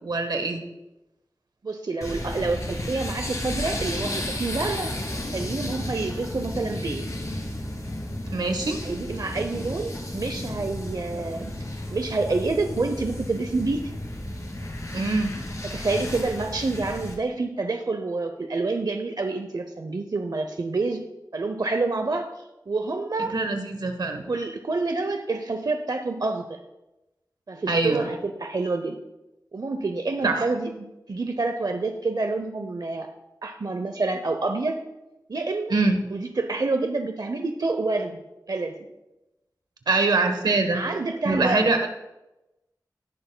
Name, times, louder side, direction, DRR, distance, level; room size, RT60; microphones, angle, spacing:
voice 1, 0.0-0.6 8.3-8.8 14.9-15.3 23.3-24.2 27.7-28.1 30.2-30.4 35.7-36.0 39.9-40.8 41.2-41.9, right 3 dB, 90° right, 6 dB, 1.1 m, -23 dB
voice 2, 1.6-4.9 5.3-7.2 8.8-11.5 11.9-13.8 15.6-21.0 21.3-22.3 22.7-23.3 24.2-26.6 27.5-29.0 29.5-33.1 33.4-34.8 35.3-35.8 36.1-38.2 38.5-38.7 40.7-41.9, right 3 dB, 65° right, 6 dB, 0.7 m, -28 dB
sound 1, 2.0-17.1, left 1 dB, 50° left, 2.7 m, -33 dB
18.0 x 6.7 x 2.3 m, 0.96 s
cardioid pair, 40°, 7 cm